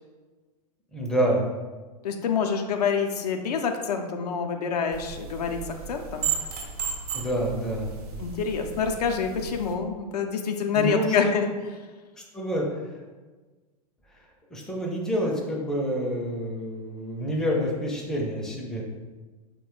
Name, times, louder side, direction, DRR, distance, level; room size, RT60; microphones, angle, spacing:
voice 1, 0.9-1.4 7.1-7.9 10.7-11.4 12.3-12.7 14.5-18.8, equal, 5° left, -2 dB, 0.4 m, -27 dB
voice 2, 2.0-6.3 8.2-11.5, left 6 dB, 80° left, 4 dB, 0.4 m, -27 dB
sound 1, 4.9-9.7, right 7 dB, 70° right, 0.6 m, -34 dB
3.1 x 2.2 x 3.0 m, 1.3 s
hypercardioid pair, 110°, 20 cm